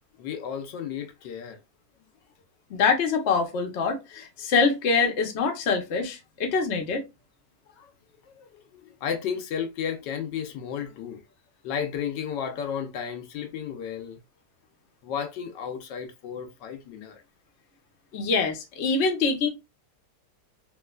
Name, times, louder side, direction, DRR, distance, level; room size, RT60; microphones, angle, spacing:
voice 1, 0.2-1.6 7.7-7.9 8.3-11.2 11.6-14.2 15.0-17.2, left 8 dB, 85° left, 1.3 m, -33 dB
voice 2, 2.7-7.0 18.1-19.5, left 4 dB, 55° left, 0.8 m, -24 dB
3.1 x 3.0 x 2.3 m
omnidirectional pair, 1.9 m